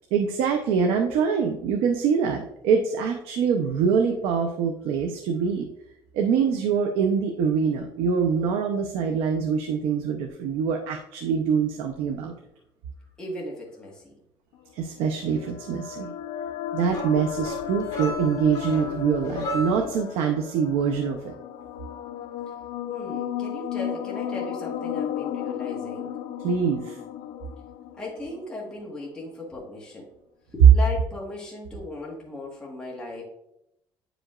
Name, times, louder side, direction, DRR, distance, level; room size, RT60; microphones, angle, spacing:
voice 1, 0.1-5.7 6.1-12.3 14.7-16.1 16.7-21.3 26.4-27.0, right 6 dB, 90° right, 3 dB, 0.7 m, -24 dB
voice 2, 13.2-14.1 15.8-15.9 22.9-26.2 27.9-30.1 30.5-33.2, left 2 dB, 10° left, -5 dB, 1.4 m, -37 dB
sound 1, 14.8-28.9, left 10 dB, 70° left, 0.4 m, -34 dB
sound 2, 16.9-20.0, left 1 dB, 40° left, 2.2 m, -34 dB
8.7 x 5.1 x 2.4 m, 0.81 s
cardioid pair, 135°, 9 cm